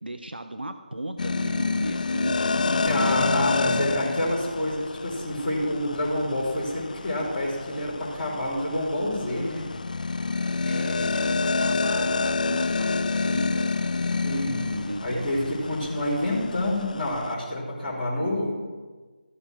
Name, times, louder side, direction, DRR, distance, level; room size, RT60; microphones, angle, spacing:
voice 1, 0.0-3.9 10.7-13.7 14.7-15.3, right 1 dB, 85° right, 8 dB, 0.8 m, -36 dB
sound 1, 1.2-17.3, left 3 dB, 55° left, 0.4 m, -28 dB
voice 2, 2.8-9.6 14.2-14.6 15.0-18.7, left 1 dB, 15° left, -12 dB, 3.3 m, -27 dB
14.0 x 6.6 x 6.1 m, 1.3 s
figure-of-eight pair, 160°, 5 cm